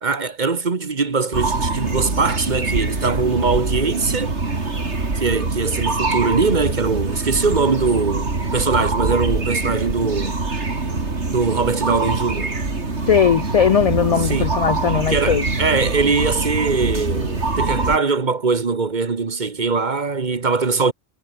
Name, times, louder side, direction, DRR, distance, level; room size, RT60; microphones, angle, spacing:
voice 1, 0.0-4.4 5.2-10.4 11.3-12.5 14.2-14.5 15.1-20.9, right 4 dB, 45° right, 1.4 m, -21 dB
sound 1, 1.3-18.0, right 3 dB, 80° right, 3.5 m, -24 dB
voice 2, 13.1-15.5, left 8 dB, 55° left, 0.4 m, -18 dB
omnidirectional pair, 1.1 m